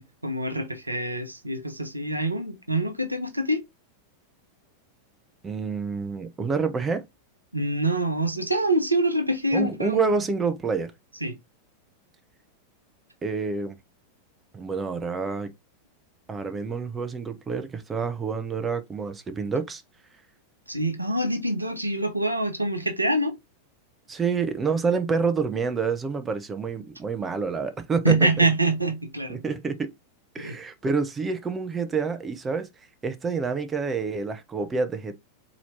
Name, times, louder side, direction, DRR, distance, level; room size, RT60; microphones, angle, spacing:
voice 1, 0.0-3.6 7.5-10.0 11.2-11.4 20.7-23.3 28.0-29.4 30.4-30.5, right 2 dB, 85° right, 0.7 m, -25 dB
voice 2, 5.4-7.0 9.5-10.9 13.2-13.8 14.5-15.5 16.3-19.8 24.1-28.4 29.3-29.9 30.3-32.7 33.0-35.2, right 5 dB, 15° right, 0.6 m, -28 dB
4.1 x 3.0 x 2.7 m
figure-of-eight pair, 90°, 0 cm